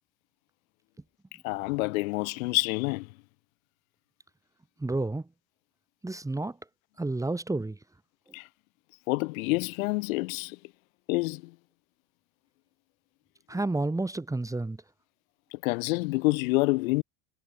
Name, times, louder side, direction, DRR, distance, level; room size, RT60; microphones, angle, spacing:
voice 1, 1.4-3.1 8.3-8.5 9.1-10.6 11.1-11.5 15.5-17.0, left 24 dB, 70° left, 2.7 m, -27 dB
voice 2, 4.8-5.2 6.0-6.6 7.0-7.8 13.5-14.8, right 2 dB, 5° right, 4.0 m, -30 dB
supercardioid pair, 125°, 43 cm